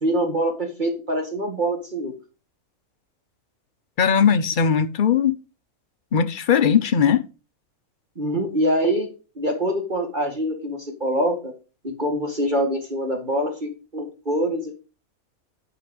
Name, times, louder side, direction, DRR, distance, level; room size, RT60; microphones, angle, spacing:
voice 1, 0.0-2.1 8.2-9.1 9.4-11.5 11.8-14.8, right 1 dB, 35° right, 2.0 m, -24 dB
voice 2, 4.0-5.3 6.1-7.2, left 7 dB, 50° left, 0.6 m, -19 dB
11.0 x 5.0 x 5.1 m
omnidirectional pair, 1.5 m